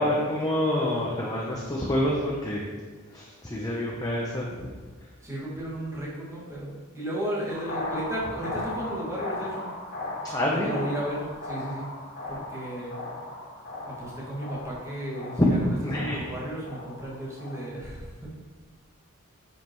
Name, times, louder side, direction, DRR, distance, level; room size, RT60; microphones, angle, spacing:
voice 1, 0.0-2.6 3.1-4.5 10.3-10.7 15.4-15.5 15.8-16.2, left 1 dB, 15° left, -3 dB, 0.8 m, -27 dB
voice 2, 5.2-9.7 10.5-11.9 12.3-13.0 13.8-18.4, right 1 dB, 15° right, -7 dB, 1.9 m, -34 dB
sound 1, 7.5-17.7, left 2 dB, 45° left, 1.7 m, -37 dB
9.2 x 5.5 x 3.1 m, 1.4 s
head